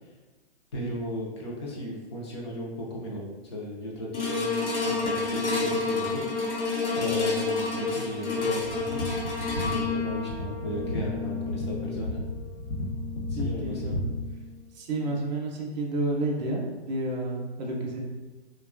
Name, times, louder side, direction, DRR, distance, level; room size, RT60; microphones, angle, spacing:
voice 1, 0.7-6.2 7.0-12.2 13.3-13.9, equal, 25° left, -4 dB, 0.4 m, -36 dB
sound 1, 4.1-14.5 15.1-15.2, left 4 dB, 85° left, 0.9 m, -30 dB
sound 2, 8.7-14.3, left 1 dB, 60° left, 0.7 m, -34 dB
voice 2, 13.3-14.1 14.7-18.0, right 2 dB, 40° right, -1 dB, 0.5 m, -30 dB
2.8 x 2.2 x 2.3 m, 1.2 s
hypercardioid pair, 145°, 34 cm